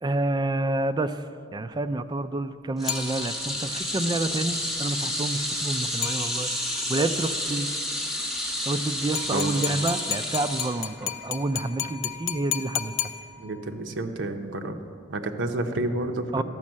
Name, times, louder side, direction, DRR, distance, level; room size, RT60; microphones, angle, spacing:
voice 1, 0.0-1.2 1.5-7.7 8.7-13.1 16.3-16.4, right 2 dB, 20° right, 10 dB, 0.3 m, -28 dB
sound 1, 2.8-11.3 11.6-11.9 13.0-13.1, left 1 dB, ahead, 1.5 m, -30 dB
sound 2, 2.9-3.7 6.0-6.8 9.2-13.8, left 12 dB, 80° left, 0.5 m, -34 dB
voice 2, 13.4-14.8 15.1-16.4, right 2 dB, 75° right, 5 dB, 0.7 m, -30 dB
12.0 x 5.3 x 7.4 m, 2.5 s
head